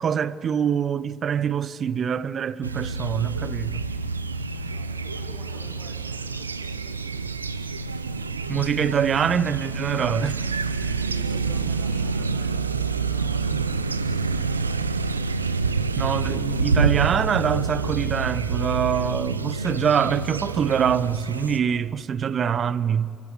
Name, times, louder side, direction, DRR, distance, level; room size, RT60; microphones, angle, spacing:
voice 1, 0.0-3.9 8.5-10.4 16.0-23.2, right 8 dB, 45° right, 0.6 m, -24 dB
sound 1, 2.6-21.6, right 4 dB, 85° right, 0.6 m, -27 dB
voice 2, 4.5-7.0 10.9-15.1, left 1 dB, 30° left, 6.9 m, -49 dB
28.0 x 14.5 x 8.1 m
figure-of-eight pair, 50°, 0 cm